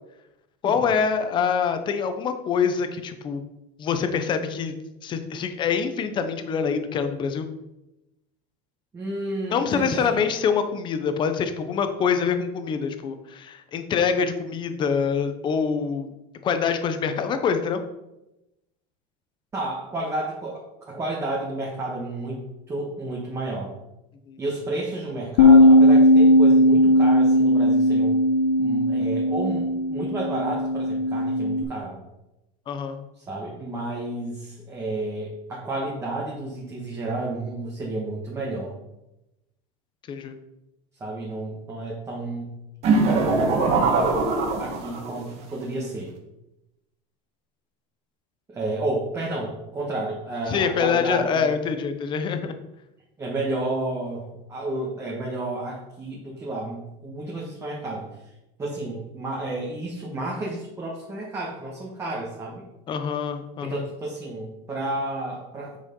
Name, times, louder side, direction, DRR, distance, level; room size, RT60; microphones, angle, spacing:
voice 1, 0.6-3.4 3.8-4.7 5.0-7.5 9.5-16.1 16.4-17.8 24.3-24.4 32.7-33.0 40.1-40.4 50.5-52.6 62.9-63.8, left 6 dB, 25° left, 8 dB, 0.9 m, -25 dB
voice 2, 8.9-10.3 19.5-23.7 24.4-28.2 28.6-32.0 33.2-38.7 41.0-42.5 42.9-44.2 44.6-46.1 48.5-51.5 53.2-58.3 58.6-62.6 63.6-65.8, right 2 dB, 15° right, -4 dB, 1.6 m, -31 dB
Bass guitar, 25.4-31.6, left 1 dB, 90° left, 1.1 m, -17 dB
sound 1, 42.8-45.2, right 3 dB, 35° right, 1.7 m, -21 dB
8.2 x 6.3 x 5.4 m, 0.93 s
supercardioid pair, 165°, 19 cm